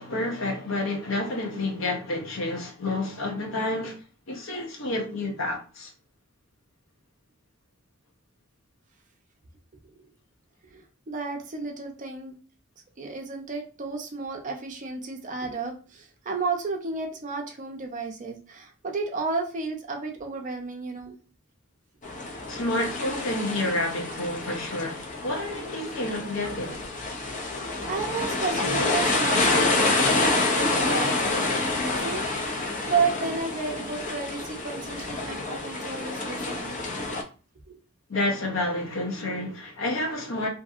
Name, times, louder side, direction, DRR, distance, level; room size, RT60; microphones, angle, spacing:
voice 1, 0.0-4.0 4.3-5.9 22.4-26.9 38.1-40.5, left 2 dB, 70° left, 0.7 m, -29 dB
voice 2, 10.7-12.4 13.0-21.2 27.6-32.6 32.9-36.8 37.1-37.2 37.7-37.8, right 4 dB, 40° right, 0.5 m, -32 dB
sound 1, 22.0-37.2, left 2 dB, 40° left, 0.5 m, -28 dB
2.6 x 2.6 x 2.4 m
head